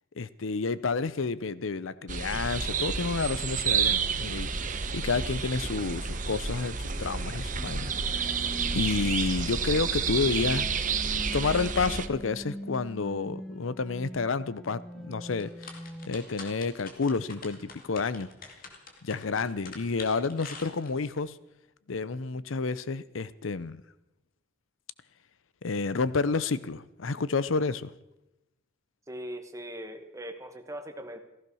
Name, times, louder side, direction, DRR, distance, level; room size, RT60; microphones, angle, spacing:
voice 1, 0.2-10.7 11.3-15.8 16.0-18.3 19.0-21.3 21.9-23.8 25.6-27.9, left 4 dB, 85° left, 17 dB, 0.7 m, -30 dB
sound 1, 2.1-12.1, right 6 dB, 40° right, 1.0 m, -30 dB
sound 2, 7.6-16.1, equal, 5° left, 0.9 m, -43 dB
sound 3, 15.3-21.2, left 4 dB, 45° left, 2.4 m, -46 dB
voice 2, 29.1-31.2, equal, 15° right, 6 dB, 1.5 m, -40 dB
15.5 x 15.0 x 6.3 m, 0.91 s
head